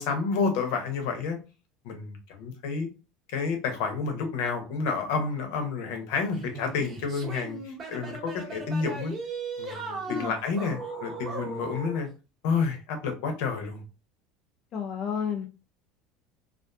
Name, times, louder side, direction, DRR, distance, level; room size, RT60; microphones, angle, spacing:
voice 1, 0.0-1.4 1.8-2.9 3.3-9.1 9.6-12.1 12.4-13.8, left 5 dB, 75° left, 5 dB, 0.7 m, -30 dB
sound 1, 6.3-12.0, right 3 dB, 30° right, 0.8 m, -37 dB
voice 2, 14.7-15.5, left 7 dB, 40° left, 1 dB, 0.4 m, -31 dB
2.5 x 2.3 x 2.5 m, 0.32 s
supercardioid pair, 125°, 0 cm